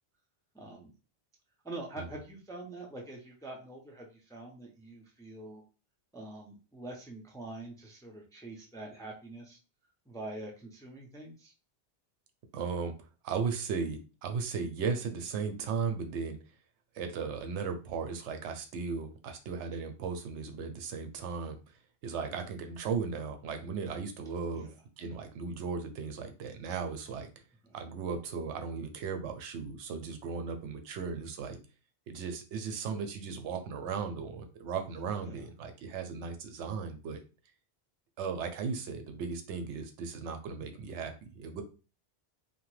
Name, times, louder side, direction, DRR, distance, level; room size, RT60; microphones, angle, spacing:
voice 1, 0.5-0.9 1.6-5.6 6.1-9.6 10.1-11.5 22.0-22.3 24.5-24.7 27.6-27.7 35.2-35.4, right 2 dB, 5° left, 0 dB, 0.3 m, -45 dB
voice 2, 12.5-12.9 13.2-16.4 16.9-21.6 22.0-24.7 25.0-27.3 27.7-31.6 32.1-37.2 38.2-41.6, right 5 dB, 90° right, 6 dB, 0.9 m, -36 dB
2.9 x 2.1 x 3.1 m, 0.33 s
omnidirectional pair, 1.1 m